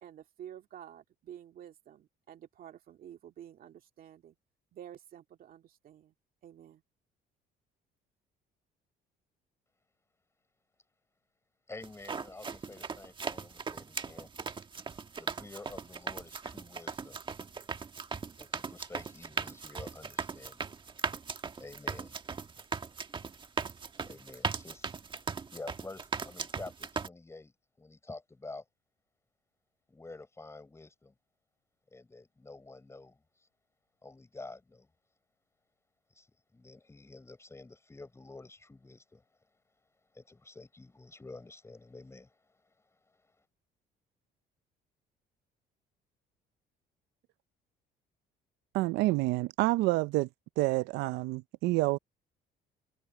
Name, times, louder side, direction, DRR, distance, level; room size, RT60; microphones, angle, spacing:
voice 1, 0.0-4.3 4.7-6.1 6.4-6.8, right 10 dB, 60° right, 2.3 m, -50 dB
voice 2, 11.7-14.3 15.1-17.2 18.4-20.7 21.6-22.2 24.0-24.9 25.5-28.6 29.9-31.1 31.9-33.5 34.0-34.9 36.1-36.3 36.5-39.2 40.1-42.4, left 3 dB, 15° left, 6.8 m, -49 dB
sound 1, 11.8-27.1, right 5 dB, 30° right, 1.5 m, -38 dB
voice 3, 48.7-50.3 50.6-52.0, right 20 dB, 90° right, 0.5 m, -28 dB
cardioid pair, 110°, 17 cm